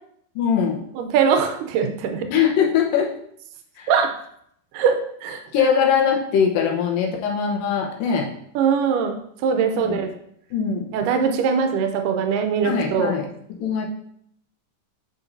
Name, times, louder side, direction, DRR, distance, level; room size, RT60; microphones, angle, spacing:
voice 1, 0.4-0.8 2.3-3.1 3.8-3.9 5.5-8.3 9.8-10.0 10.5-10.9 12.6-13.3 13.6-13.9, left 7 dB, 90° left, 0 dB, 2.7 m, -21 dB
voice 2, 1.0-2.3 3.9-4.1 4.7-5.4 8.6-10.1 10.9-13.1, right 6 dB, 85° right, 5 dB, 2.2 m, -21 dB
8.8 x 5.9 x 2.7 m, 0.69 s
omnidirectional pair, 3.9 m